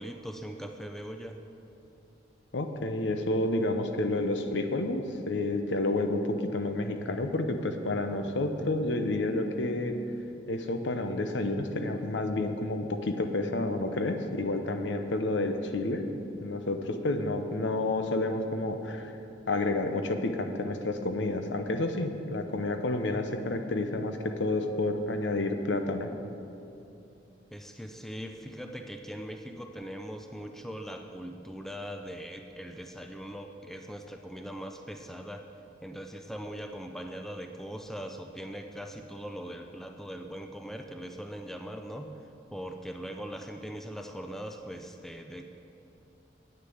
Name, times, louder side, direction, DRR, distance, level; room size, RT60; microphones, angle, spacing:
voice 1, 0.0-1.4 27.5-35.5 35.8-42.1 42.5-45.5, equal, ahead, 5 dB, 0.4 m, -40 dB
voice 2, 2.5-9.9 10.5-16.1 16.4-19.1 19.5-26.1, left 2 dB, 80° left, 6 dB, 0.8 m, -30 dB
9.0 x 6.8 x 7.7 m, 2.7 s
head